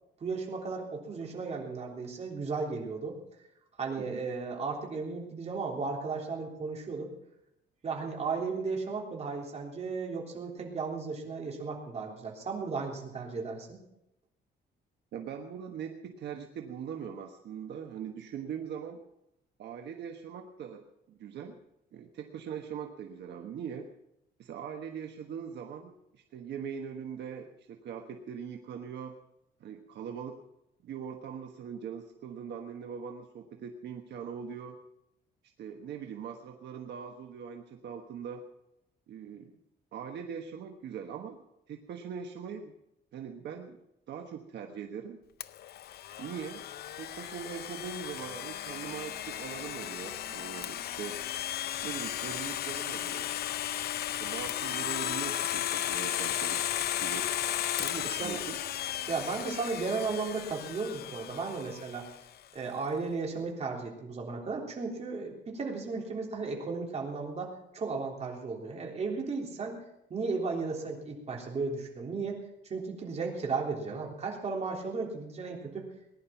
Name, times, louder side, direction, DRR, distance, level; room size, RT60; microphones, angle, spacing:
voice 1, 0.2-3.2 3.8-7.1 7.8-13.8 58.0-58.4 59.1-62.1 62.5-69.8 70.1-72.4 72.7-75.9, right 4 dB, 35° right, 0 dB, 3.5 m, -35 dB
voice 2, 15.1-19.0 19.6-21.6 21.9-23.9 24.4-29.1 29.6-30.4 30.8-34.8 35.6-38.4 39.1-39.5 39.9-42.7 43.1-43.8 44.1-45.2 46.2-46.6 47.0-51.2 51.8-53.3 54.2-56.6 57.0-57.3 57.7-58.6, right 7 dB, 70° right, 4 dB, 1.3 m, -41 dB
Domestic sounds home sounds, 45.4-62.2, left 11 dB, 60° left, 0.6 m, -35 dB
20.0 x 11.0 x 5.8 m, 0.83 s
cardioid pair, 145°, 18 cm